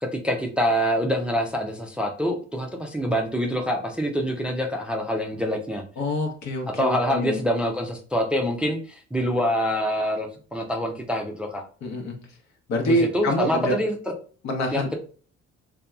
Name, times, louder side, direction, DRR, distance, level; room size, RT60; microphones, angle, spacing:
voice 1, 0.0-5.8 6.8-11.7 12.8-14.0 14.7-15.0, equal, 5° right, 2 dB, 0.4 m, -25 dB
voice 2, 6.0-7.4 11.8-12.2 12.7-13.8 14.4-14.9, left 1 dB, 65° left, 2 dB, 0.9 m, -26 dB
2.8 x 2.2 x 2.3 m, 0.41 s
supercardioid pair, 80°, 30 cm